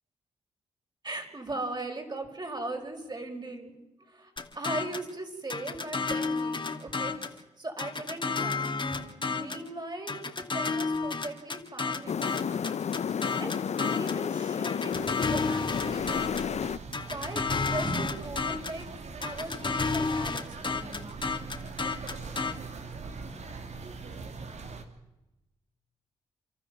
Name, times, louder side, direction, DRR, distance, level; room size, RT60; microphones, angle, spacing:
voice 1, 1.0-12.8 13.4-16.5 17.1-18.8 19.2-21.1, right 2 dB, 35° right, 4 dB, 5.9 m, -39 dB
sound 1, 4.4-5.1 5.5-7.4 7.8-9.7 10.1-14.2 14.6-16.5 16.9-18.8 19.2-22.5, left 4 dB, 40° left, 2.5 m, -31 dB
sound 2, 12.1-16.8, left 7 dB, 60° left, 0.7 m, -31 dB
sound 3, 15.7-24.8, right 4 dB, 60° right, 2.7 m, -42 dB
29.0 x 13.5 x 7.3 m, 0.97 s
supercardioid pair, 45°, 13 cm